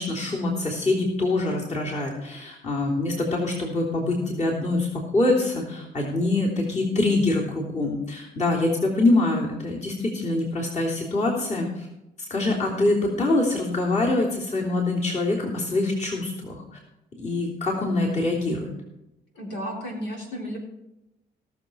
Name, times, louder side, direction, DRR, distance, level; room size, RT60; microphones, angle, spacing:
voice 1, 0.0-4.9 5.1-11.9 12.3-16.6 17.2-18.7, left 2 dB, 40° left, -3 dB, 3.3 m, -24 dB
voice 2, 19.3-20.6, equal, 90° left, -1 dB, 3.7 m, -33 dB
17.5 x 6.9 x 4.5 m, 0.91 s
cardioid pair, 80°, 18 cm